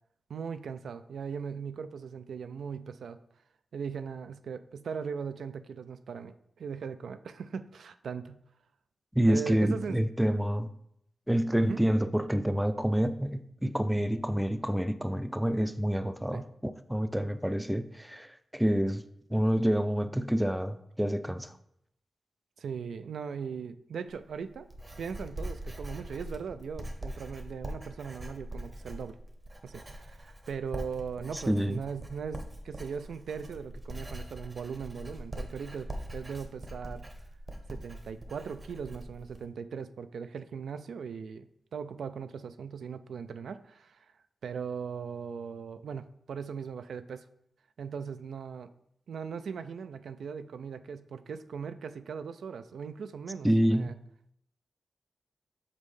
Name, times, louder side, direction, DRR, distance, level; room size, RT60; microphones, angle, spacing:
voice 1, 0.3-3.2 3.7-8.4 9.3-10.0 11.6-11.8 16.3-16.4 22.6-24.7 25.0-29.2 29.6-37.0 37.7-44.0 44.4-47.2 47.8-48.7 49.1-53.9, right 6 dB, 90° right, 11 dB, 0.3 m, -39 dB
voice 2, 9.2-10.7 11.3-19.0 19.3-21.5 31.3-31.8 53.4-53.9, equal, 5° right, 11 dB, 0.3 m, -28 dB
Writing, 24.1-39.4, right 1 dB, 30° right, 0.8 m, -42 dB
7.3 x 4.2 x 3.2 m, 0.75 s
wide cardioid pair, 115°, 0 cm